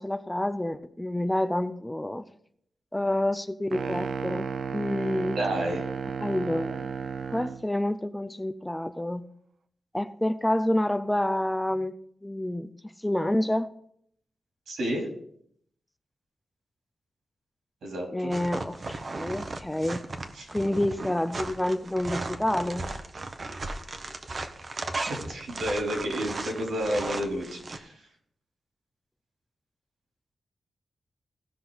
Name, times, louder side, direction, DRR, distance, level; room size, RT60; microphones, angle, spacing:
voice 1, 0.0-2.2 2.9-5.4 6.2-6.9 7.3-9.3 9.9-11.9 12.2-12.7 13.0-13.7 18.1-20.0 20.5-22.9, left 1 dB, 5° left, 11 dB, 0.4 m, -28 dB
sound 1, 3.7-7.6, right 5 dB, 60° right, 0.6 m, -33 dB
voice 2, 5.4-5.8 14.7-15.1 17.8-18.3 20.4-20.5 25.3-27.9, equal, 80° right, 1 dB, 3.2 m, -30 dB
sound 2, 18.3-27.8, right 2 dB, 35° right, 0.8 m, -36 dB
17.0 x 5.9 x 3.9 m, 0.68 s
wide cardioid pair, 150°, 0 cm